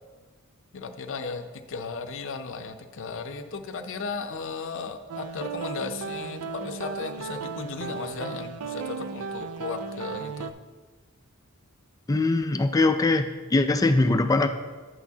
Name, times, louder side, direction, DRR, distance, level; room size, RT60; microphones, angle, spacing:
voice 1, 0.7-10.5, left 4 dB, 60° left, 7 dB, 0.6 m, -35 dB
sound 1, 5.1-10.5, right 5 dB, 85° right, 0.4 m, -35 dB
voice 2, 12.1-14.5, left 2 dB, 15° left, 7 dB, 0.3 m, -22 dB
11.0 x 8.2 x 2.8 m, 1.4 s
head